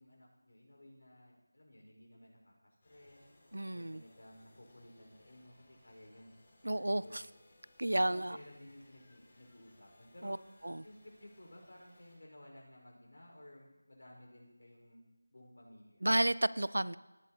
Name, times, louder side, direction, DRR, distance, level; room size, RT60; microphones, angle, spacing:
voice 1, 0.0-3.3 3.7-6.3 6.7-7.2 8.1-10.4 10.8-15.0 15.3-16.1, left 1 dB, 65° left, -1 dB, 4.9 m, -56 dB
sound 1, 2.8-12.2, left 1 dB, 30° left, 2.4 m, -66 dB
voice 2, 3.5-4.0 6.6-7.2 7.8-8.4 10.2-10.4 10.6-10.8 16.0-17.0, right 1 dB, 80° right, 18 dB, 0.4 m, -32 dB
18.0 x 11.5 x 2.9 m, 1.1 s
figure-of-eight pair, 170°, 0 cm